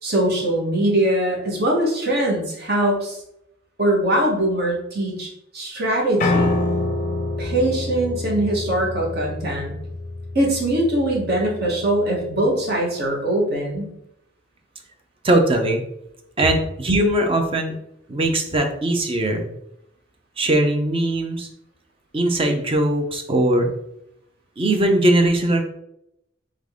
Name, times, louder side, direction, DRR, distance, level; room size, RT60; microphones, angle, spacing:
voice 1, 0.0-3.2 3.8-6.6 7.4-9.7 10.3-13.9, right 1 dB, 50° right, -2 dB, 1.4 m, -22 dB
Piano, 6.2-12.4, left 2 dB, 40° left, 0.5 m, -27 dB
voice 2, 15.2-15.8 16.4-17.8 18.1-19.5 20.4-21.5 22.1-23.7 24.6-25.7, right 1 dB, 25° right, 4 dB, 0.6 m, -20 dB
3.8 x 3.7 x 3.6 m, 0.79 s
head